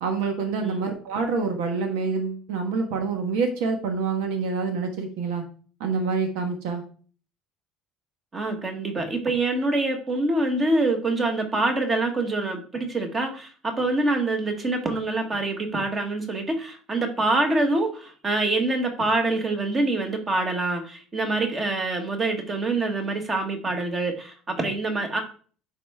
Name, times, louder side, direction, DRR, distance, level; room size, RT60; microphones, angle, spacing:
voice 1, 0.0-5.4 5.8-6.8, right 4 dB, 85° right, 4 dB, 1.5 m, -26 dB
voice 2, 8.3-25.2, right 2 dB, 15° right, 4 dB, 1.2 m, -25 dB
10.0 x 4.3 x 3.5 m, 0.42 s
cardioid pair, 180°, 0 cm